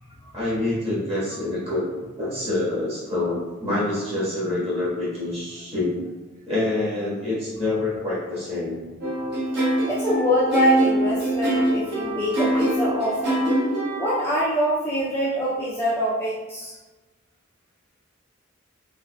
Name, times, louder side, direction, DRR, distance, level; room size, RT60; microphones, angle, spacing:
voice 1, 0.3-1.9 2.2-5.9 6.4-8.8, left 2 dB, 30° right, -9 dB, 1.3 m, -26 dB
sound 1, 9.0-14.1, right 1 dB, 50° right, 1.0 m, -24 dB
voice 2, 9.8-13.4 14.0-16.8, equal, 10° left, -8 dB, 0.4 m, -24 dB
3.4 x 3.1 x 2.2 m, 1.2 s
head